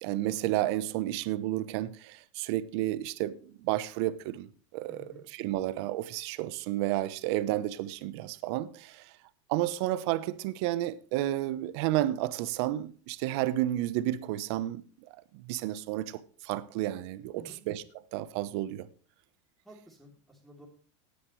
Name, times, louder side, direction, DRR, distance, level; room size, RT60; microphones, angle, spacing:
voice 1, 0.0-4.5 4.7-9.1 9.5-14.8 15.3-17.8 18.1-18.9, right 14 dB, 60° right, 1.0 m, -31 dB
voice 2, 4.9-5.2 17.4-17.6 19.6-20.7, equal, ahead, 3.1 m, -52 dB
17.5 x 9.8 x 3.2 m
supercardioid pair, 160°, 16 cm